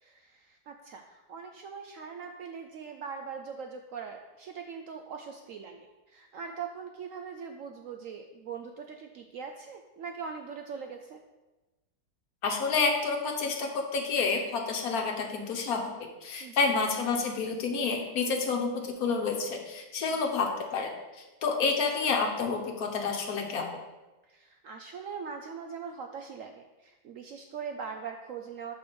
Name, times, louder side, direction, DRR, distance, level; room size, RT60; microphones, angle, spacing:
voice 1, 0.0-11.2 16.4-16.8 24.3-28.7, right 6 dB, 75° right, 4 dB, 0.7 m, -41 dB
voice 2, 12.4-15.9 16.2-20.9 21.4-23.7, left 4 dB, 60° left, 2 dB, 1.4 m, -29 dB
6.2 x 5.2 x 5.1 m, 1.1 s
omnidirectional pair, 1.9 m